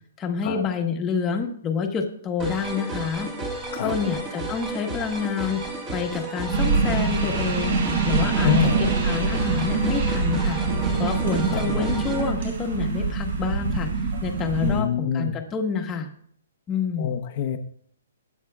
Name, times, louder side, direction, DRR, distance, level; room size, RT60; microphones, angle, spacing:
voice 1, 0.2-3.3 3.8-7.8 8.0-10.6 11.0-13.9 14.2-16.1 16.7-17.1, left 6 dB, 15° left, 2 dB, 1.3 m, -28 dB
sound 1, 2.4-12.3, right 2 dB, 15° right, 1.6 m, -33 dB
voice 2, 3.7-4.1 8.4-8.8 11.5-11.9 14.6-15.3 17.0-17.6, left 9 dB, 35° left, 1 dB, 0.9 m, -26 dB
sound 2, 6.5-14.8, right 4 dB, 60° right, 5.2 m, -24 dB
22.0 x 9.1 x 2.4 m, 0.66 s
hypercardioid pair, 165°, 0 cm